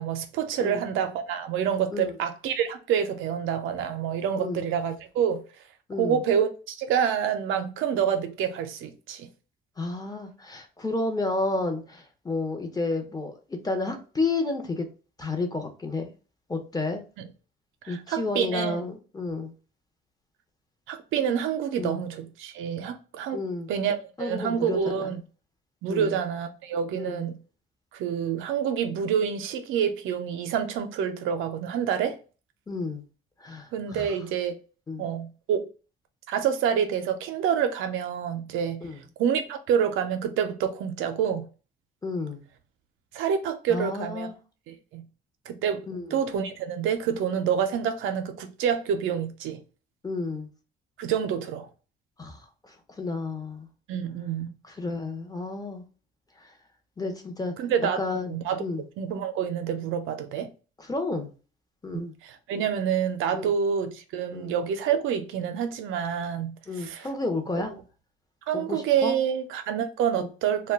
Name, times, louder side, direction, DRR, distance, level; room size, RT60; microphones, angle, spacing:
voice 1, 0.0-5.4 6.0-9.3 17.2-17.3 17.8-18.8 20.9-23.4 23.7-25.2 25.8-27.4 27.9-32.2 33.7-34.5 35.0-35.7 36.3-38.8 39.2-41.5 43.1-44.3 44.7-45.1 45.5-49.6 51.0-51.7 53.9-54.5 57.6-58.0 58.3-58.6 59.0-60.5 62.2-67.1 68.5-70.7, right 8 dB, 85° right, 0.5 m, -27 dB
voice 2, 5.9-6.2 9.8-14.9 15.2-16.1 16.5-17.0 17.9-19.5 21.8-22.0 23.3-23.7 24.2-25.1 25.9-26.2 26.9-27.2 32.7-33.0 33.4-34.1 34.9-35.0 38.8-39.0 42.0-42.4 43.7-44.4 45.9-46.1 50.0-50.5 52.2-53.7 54.7-55.8 56.4-56.5 57.0-57.5 58.0-58.3 58.6-58.8 60.8-61.3 61.8-62.1 63.3-63.5 64.3-64.5 66.7-67.7 68.5-69.2 70.2-70.3, left 3 dB, 20° left, 0.6 m, -31 dB
2.2 x 2.1 x 3.4 m
cardioid pair, 90°, 20 cm